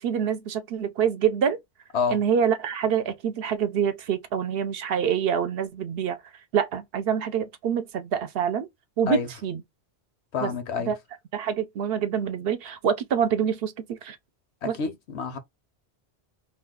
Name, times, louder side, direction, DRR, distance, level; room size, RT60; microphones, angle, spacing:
voice 1, 0.0-1.6 2.1-6.2 6.5-8.7 9.0-9.6 10.4-10.5 10.9-11.0 11.3-14.2 14.6-14.8, right 8 dB, 65° right, 0.7 m, -26 dB
voice 2, 10.3-10.9 14.6-15.4, left 5 dB, 80° left, 1.0 m, -28 dB
2.5 x 2.3 x 3.5 m
omnidirectional pair, 1.1 m